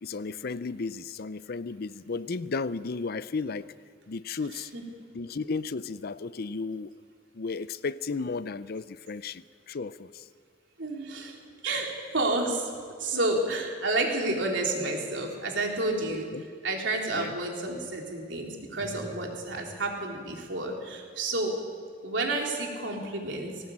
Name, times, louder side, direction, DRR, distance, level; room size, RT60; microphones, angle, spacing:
voice 1, 0.0-3.7 4.1-4.7 5.1-6.9 7.3-10.3 16.0-16.4 17.1-17.4, left 4 dB, 55° left, 0.5 m, -34 dB
voice 2, 4.5-4.8 10.8-11.4 11.6-12.7 13.0-16.3 16.6-21.6 22.0-23.7, right 2 dB, 70° right, 3.9 m, -30 dB
19.5 x 18.0 x 8.6 m
head